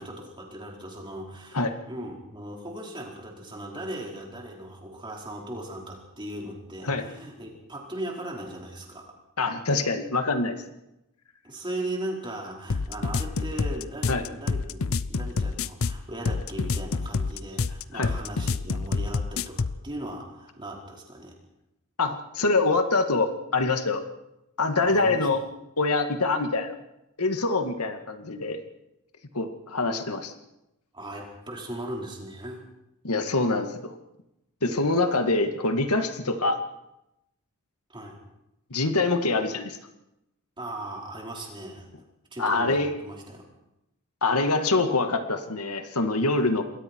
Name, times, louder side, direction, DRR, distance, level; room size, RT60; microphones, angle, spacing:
voice 1, 0.0-9.1 11.4-21.3 24.8-25.3 30.9-32.6 37.9-38.2 40.6-41.9 42.3-43.5, right 1 dB, 20° right, -1 dB, 4.9 m, -38 dB
voice 2, 9.4-10.6 14.1-14.2 17.9-18.1 22.0-24.0 24.6-25.4 25.8-26.7 27.2-28.6 29.3-30.3 33.0-33.9 34.6-36.6 38.7-39.8 42.4-42.9 44.2-46.6, left 3 dB, 85° left, 7 dB, 2.0 m, -25 dB
sound 1, 12.7-19.8, left 4 dB, 65° left, 0.7 m, -28 dB
28.0 x 21.5 x 4.7 m, 0.88 s
head